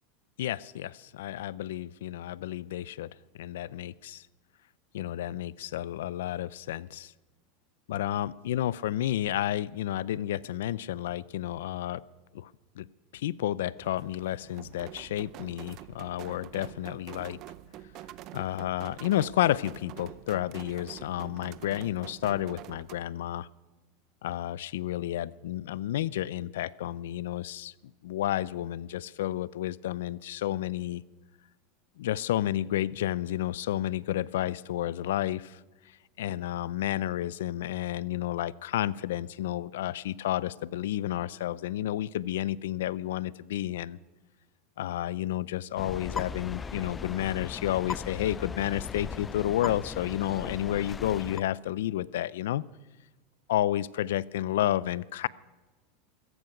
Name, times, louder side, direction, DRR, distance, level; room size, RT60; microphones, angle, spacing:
voice 1, 0.4-3.1 3.3-4.2 4.9-7.1 7.9-12.0 12.3-12.5 12.8-12.9 13.1-17.4 18.3-23.5 24.2-27.7 28.0-31.0 32.0-35.6 36.2-44.0 44.8-52.6 53.5-55.3, left 13 dB, 85° left, 21 dB, 0.5 m, -31 dB
sound 1, 13.8-23.0, right 13 dB, 45° right, 0.6 m, -46 dB
sound 2, 45.8-51.4, left 5 dB, 20° left, 0.5 m, -38 dB
15.5 x 14.5 x 5.9 m, 1.2 s
supercardioid pair, 130°, 0 cm